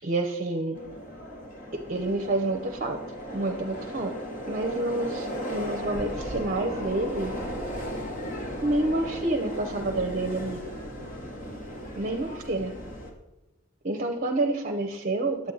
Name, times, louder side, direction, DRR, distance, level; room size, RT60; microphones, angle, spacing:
voice 1, 0.0-0.8 1.7-3.0 3.3-4.1 4.4-7.3 8.6-10.6 12.0-12.7 13.8-15.5, right 2 dB, 40° right, 4 dB, 0.7 m, -28 dB
Subway metro underground, 0.7-13.1, equal, 40° left, 1.4 m, -36 dB
9.8 x 8.4 x 3.9 m, 1.0 s
head